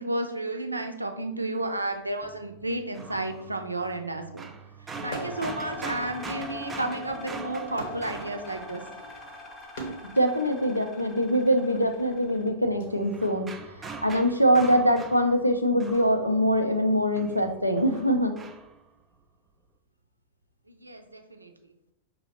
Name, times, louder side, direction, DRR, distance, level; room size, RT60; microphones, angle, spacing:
voice 1, 0.0-4.5 5.0-8.8 20.7-21.5, right 2 dB, 85° right, 5 dB, 0.4 m, -32 dB
sound 1, 2.2-9.4 12.7-16.8 17.2-18.9, right 4 dB, 15° right, 0.4 m, -43 dB
sound 2, 5.0-12.5, left 1 dB, 25° left, 0.7 m, -42 dB
sound 3, 5.1-5.6 6.0-10.3 11.2-12.9, right 1 dB, 60° left, 0.8 m, -41 dB
voice 2, 10.1-13.5 13.8-18.4, equal, 90° left, 6 dB, 0.4 m, -23 dB
5.6 x 2.6 x 3.0 m, 0.83 s
figure-of-eight pair, 90°, 0 cm